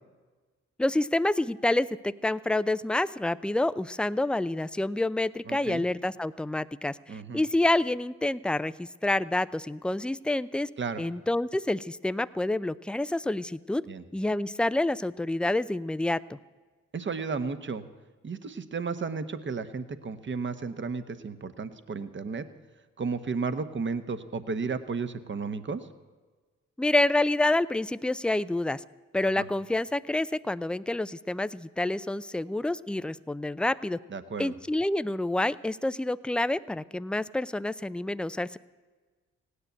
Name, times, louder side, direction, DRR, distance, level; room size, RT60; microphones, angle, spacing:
voice 1, 0.8-10.7 11.0-13.8 14.1-16.4 26.8-28.8 29.1-34.0 34.4-38.6, left 2 dB, 5° left, 16 dB, 0.5 m, -28 dB
voice 2, 5.5-5.8 7.1-7.4 10.8-11.0 13.9-14.0 16.9-17.8 18.2-22.5 23.0-25.9 29.4-29.5 34.1-34.5, right 4 dB, 40° right, 11 dB, 1.2 m, -33 dB
16.5 x 9.9 x 8.1 m, 1.3 s
supercardioid pair, 55°, 29 cm